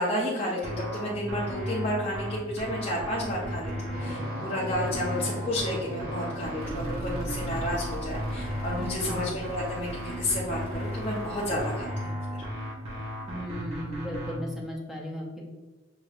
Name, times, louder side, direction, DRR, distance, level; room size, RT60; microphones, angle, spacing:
voice 1, 0.0-12.4, left 1 dB, 30° left, -6 dB, 0.6 m, -31 dB
sound 1, 0.6-14.3, equal, 35° right, 1.4 m, -35 dB
sound 2, 3.9-10.8, right 1 dB, 50° right, 0.7 m, -41 dB
sound 3, 6.6-11.8, right 1 dB, 90° right, 0.5 m, -41 dB
voice 2, 8.7-9.3 13.3-15.4, left 1 dB, ahead, -3 dB, 0.8 m, -37 dB
6.1 x 3.0 x 2.4 m, 1.2 s
head